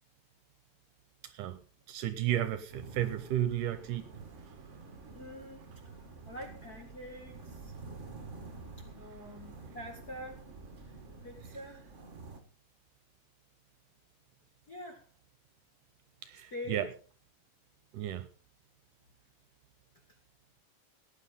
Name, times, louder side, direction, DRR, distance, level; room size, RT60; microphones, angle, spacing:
voice 1, 1.2-1.6 1.9-4.1 4.5-4.6 16.2-16.9 17.9-18.3, right 12 dB, 75° right, 2.0 m, -33 dB
sound 1, 2.7-12.4, right 3 dB, 45° right, 0.9 m, -49 dB
voice 2, 5.1-5.7 6.3-7.7 8.8-10.4 11.2-11.8 14.7-15.0 16.5-16.8, left 1 dB, 40° left, 1.5 m, -45 dB
17.5 x 9.7 x 3.9 m
omnidirectional pair, 4.2 m